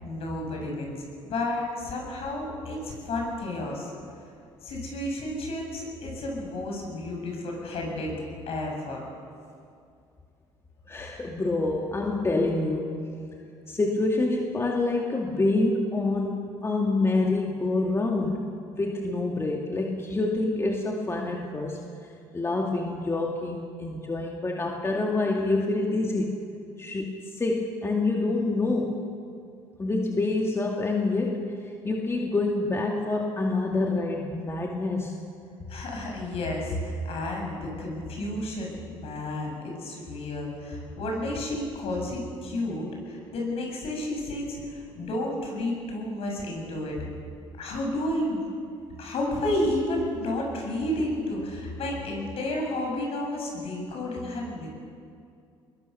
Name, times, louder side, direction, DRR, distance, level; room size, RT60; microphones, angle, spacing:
voice 1, 0.0-1.0 1.2-3.9 4.6-8.1 8.5-9.1 35.7-47.0 47.6-48.4 49.0-54.7, left 1 dB, 60° left, 0 dB, 7.7 m, -31 dB
voice 2, 10.9-13.1 13.7-21.8 22.3-26.4 26.8-29.1 29.8-35.2, left 2 dB, 25° left, 0 dB, 2.4 m, -27 dB
21.5 x 21.5 x 7.0 m, 2.4 s
supercardioid pair, 80°, 11 cm